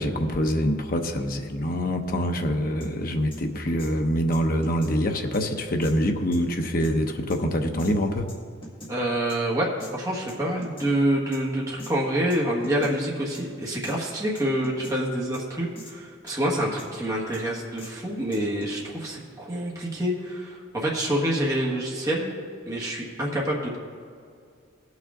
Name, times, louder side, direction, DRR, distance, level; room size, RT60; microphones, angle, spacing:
voice 1, 0.0-8.3, equal, 45° left, 4 dB, 0.8 m, -25 dB
sound 1, 2.8-2.9 3.3-3.4 3.8-3.9 4.3-5.0 5.3-5.4 5.8-5.9 6.3-6.9 7.3-7.4 7.8-7.9 8.3-8.9 9.3-9.4 9.8-9.9 10.3-10.9 11.3-11.4 11.8-11.9 12.3-12.4 12.6-13.0 13.3-13.4 13.8-14.0 14.4-15.0 15.3-15.4 15.8-15.9 16.3-16.9 17.3-17.4 17.8-17.9 18.3-18.8, equal, 25° left, 1.6 m, -42 dB
voice 2, 8.9-22.3 22.6-23.8, right 1 dB, 15° right, -4 dB, 1.4 m, -27 dB
18.0 x 6.3 x 3.7 m, 2.2 s
head